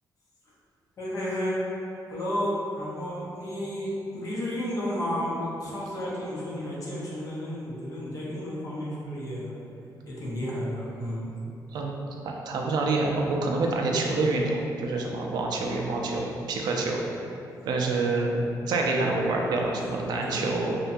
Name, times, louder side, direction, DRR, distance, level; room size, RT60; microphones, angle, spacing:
voice 1, 1.0-1.6 2.1-9.6 10.0-11.3 20.2-20.4, equal, 50° left, -6 dB, 0.6 m, -32 dB
voice 2, 12.2-17.0 17.7-20.8, right 3 dB, 70° right, 0 dB, 0.3 m, -27 dB
2.7 x 2.2 x 2.5 m, 2.6 s
cardioid pair, 135°, 7 cm